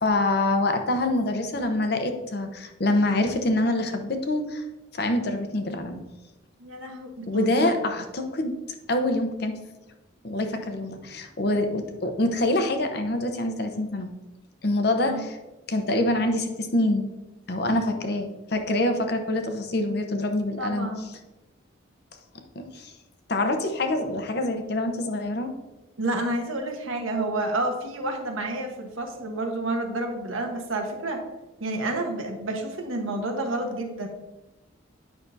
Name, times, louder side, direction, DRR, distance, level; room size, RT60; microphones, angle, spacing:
voice 1, 0.0-4.6 4.9-6.0 7.3-8.5 8.9-9.5 10.2-14.1 14.6-15.4 15.7-17.0 17.5-20.9 22.6-22.9 23.3-25.5, left 1 dB, 50° left, 6 dB, 0.8 m, -25 dB
voice 2, 6.6-7.8 15.0-15.2 20.6-21.1 26.0-31.2 31.6-34.1, right 2 dB, 85° right, 3 dB, 1.2 m, -29 dB
9.0 x 6.0 x 2.7 m, 1.1 s
head